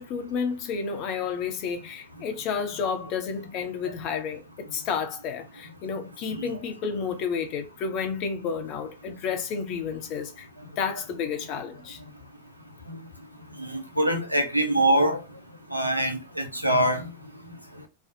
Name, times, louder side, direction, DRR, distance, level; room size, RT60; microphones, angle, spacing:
voice 1, 0.0-4.4 4.7-12.0, left 6 dB, 40° left, 0.6 m, -31 dB
voice 2, 13.6-15.2 15.7-17.1, right 1 dB, 90° right, 0.5 m, -24 dB
2.6 x 2.0 x 2.6 m
figure-of-eight pair, 90°, 0 cm